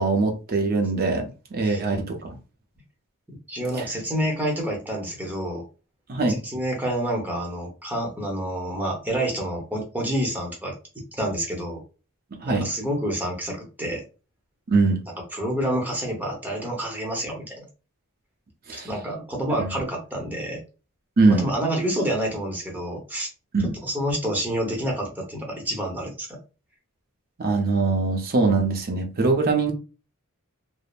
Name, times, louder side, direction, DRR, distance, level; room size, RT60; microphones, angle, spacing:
voice 1, 0.0-2.4 6.1-6.4 12.3-12.7 14.7-15.0 18.7-18.9 19.6-19.8 21.2-21.5 23.5-23.7 27.4-29.7, right 3 dB, 45° right, 0.6 m, -22 dB
voice 2, 3.3-5.7 6.3-10.7 11.1-11.8 12.5-14.0 15.3-17.6 18.7-20.6 21.3-23.3 23.6-26.4, right 1 dB, 10° right, 0.8 m, -28 dB
3.2 x 2.0 x 2.4 m
head